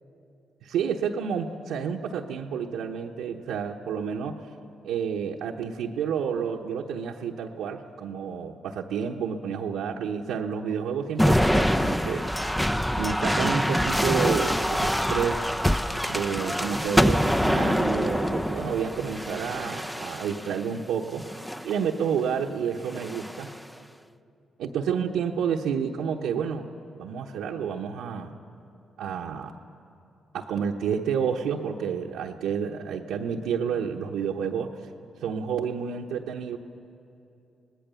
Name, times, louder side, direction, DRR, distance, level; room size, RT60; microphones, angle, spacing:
voice 1, 0.6-4.4 4.8-12.3 12.9-15.4 16.1-21.2 21.6-23.5 24.6-26.7 27.0-28.3 29.0-29.5 30.3-34.7 35.2-36.6, right 7 dB, 80° right, -2 dB, 1.0 m, -30 dB
sound 1, 11.2-20.6 21.2-21.8 22.9-23.6, equal, 5° left, 0.8 m, -25 dB
26.5 x 19.0 x 7.0 m, 2.7 s
hypercardioid pair, 45°, 0 cm